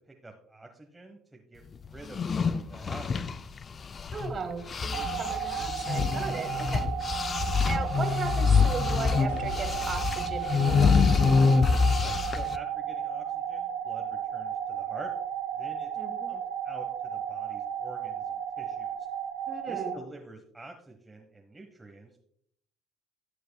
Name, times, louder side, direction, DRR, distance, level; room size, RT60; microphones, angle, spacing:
voice 1, 0.1-3.4 12.0-15.1 15.5-15.9 16.3-19.0 19.7-22.2, right 2 dB, 15° right, 2 dB, 1.2 m, -48 dB
sound 1, 2.0-4.4 4.7-12.6, left 5 dB, 35° left, 0.4 m, -26 dB
voice 2, 4.1-6.8 7.6-11.2 16.0-16.3 19.5-19.9, right 5 dB, 35° right, 7 dB, 1.5 m, -37 dB
sound 2, 4.9-19.9, right 9 dB, 75° right, 1.3 m, -34 dB
sound 3, 9.3-10.9, left 8 dB, 75° left, 0.7 m, -41 dB
15.0 x 6.7 x 2.3 m, 0.70 s
hypercardioid pair, 65°, 0 cm